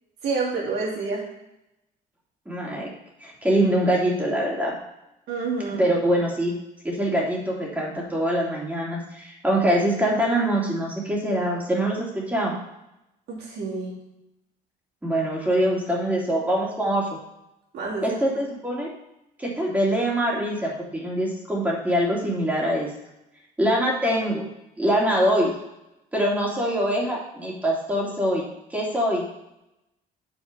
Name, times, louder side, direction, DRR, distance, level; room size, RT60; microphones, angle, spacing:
voice 1, 0.2-1.2 5.3-5.9 13.3-13.9 17.7-18.2, right 4 dB, 70° right, -4 dB, 3.3 m, -28 dB
voice 2, 2.5-2.9 3.2-4.7 5.8-6.6 6.8-12.5 15.0-17.1 18.0-18.9 19.4-22.9 23.6-24.5 24.8-25.5 26.1-29.2, right 1 dB, 10° right, -3 dB, 2.7 m, -24 dB
6.9 x 6.1 x 5.3 m, 0.89 s
cardioid pair, 110°, 17 cm